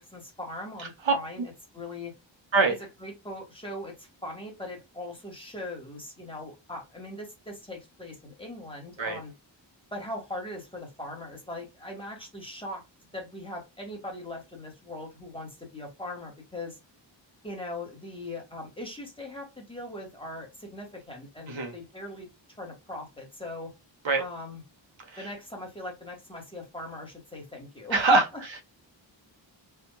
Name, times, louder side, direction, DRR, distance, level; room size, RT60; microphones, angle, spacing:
voice 1, 0.0-2.1 3.0-9.3 9.9-12.8 13.1-16.8 17.4-22.3 22.6-23.7 24.2-24.6 25.2-28.2, left 1 dB, 10° left, 1.6 m, -40 dB
voice 2, 27.9-28.6, right 3 dB, 75° right, 1.3 m, -24 dB
3.4 x 2.8 x 2.2 m
wide cardioid pair, 115°, 46 cm